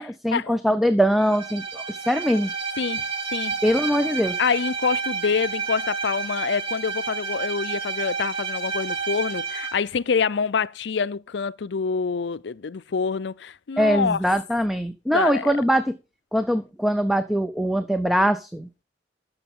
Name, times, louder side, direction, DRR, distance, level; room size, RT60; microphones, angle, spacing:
voice 1, 0.0-2.5 3.6-4.4 13.8-16.0 16.3-18.7, equal, ahead, 0.5 m, -22 dB
Bowed string instrument, 1.2-9.8, right 5 dB, 30° right, 2.2 m, -30 dB
voice 2, 4.4-14.2 15.1-15.5, left 5 dB, 70° left, 0.5 m, -26 dB
12.5 x 7.1 x 3.7 m
head